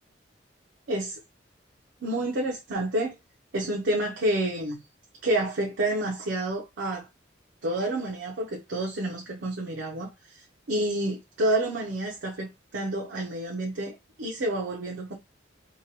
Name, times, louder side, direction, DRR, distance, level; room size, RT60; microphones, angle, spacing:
voice 1, 0.9-1.2 2.0-3.1 3.5-4.8 5.2-7.1 7.6-15.1, right 1 dB, 75° right, 0.6 m, -29 dB
2.9 x 2.2 x 2.7 m
head